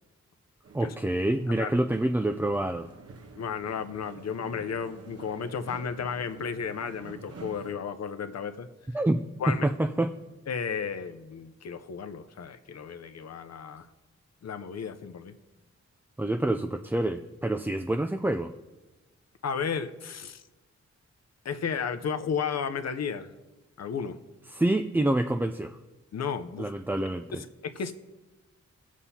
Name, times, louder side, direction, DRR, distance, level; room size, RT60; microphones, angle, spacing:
sound 1, 0.6-7.7, right 4 dB, 55° right, 1.1 m, -48 dB
voice 1, 0.7-2.9 8.9-9.2 9.6-10.1 16.2-18.5 24.5-25.8 26.6-27.4, right 1 dB, 5° right, 6 dB, 0.3 m, -27 dB
voice 2, 3.4-8.7 9.4-9.7 10.5-13.9 14.4-15.3 19.4-20.4 21.4-23.3 23.8-24.2 26.1-26.7 27.3-27.9, left 6 dB, 60° left, 9 dB, 0.7 m, -33 dB
19.0 x 7.2 x 2.8 m, 1.1 s
wide cardioid pair, 85°, 29 cm